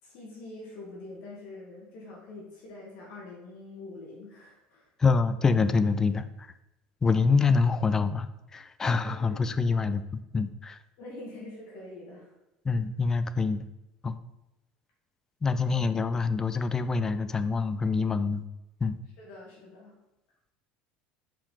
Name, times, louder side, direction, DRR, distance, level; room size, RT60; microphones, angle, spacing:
voice 1, 0.0-4.9 9.0-9.8 11.0-12.3 15.4-15.8 19.2-19.9, left 2 dB, 60° left, -4 dB, 2.1 m, -45 dB
voice 2, 5.0-6.2 7.0-10.0 10.3-10.8 12.7-13.6 14.0-14.1 15.4-18.4 18.8-19.0, left 4 dB, 15° left, 12 dB, 0.3 m, -25 dB
5.6 x 4.9 x 4.3 m, 0.92 s
cardioid pair, 155°, 3 cm